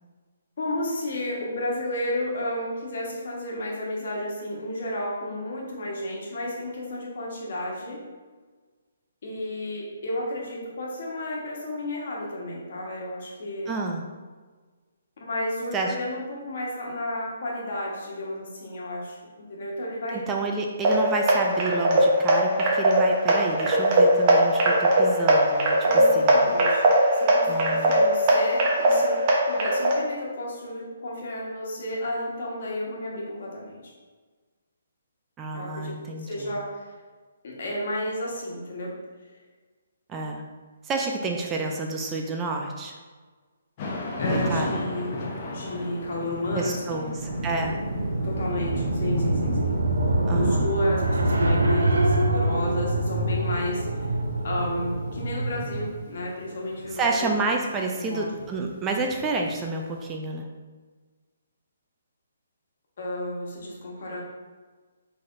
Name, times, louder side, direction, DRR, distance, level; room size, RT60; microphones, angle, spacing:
voice 1, 0.6-8.0 9.2-13.7 15.2-20.2 25.8-29.2 29.5-33.9 35.5-36.9 37.4-39.0 44.2-45.2 45.5-47.1 48.2-49.8 50.3-54.1 54.4-57.3 57.9-58.3 63.0-64.2, left 1 dB, 60° left, -3 dB, 1.3 m, -32 dB
voice 2, 13.7-14.1 15.7-15.9 20.1-25.8 26.1-26.4 27.5-28.0 35.4-36.6 40.1-40.4 40.8-42.9 44.3-44.7 46.5-47.8 50.3-50.7 56.9-60.5, right 3 dB, 15° right, 1 dB, 0.4 m, -29 dB
sound 1, 20.8-30.0, right 1 dB, 35° right, 0.8 m, -20 dB
Thunder / Rain, 43.8-59.8, left 2 dB, 35° left, 0.9 m, -36 dB
sound 2, 47.1-55.9, right 1 dB, 85° right, 0.6 m, -25 dB
5.6 x 3.3 x 2.6 m, 1.4 s
hypercardioid pair, 145°, 0 cm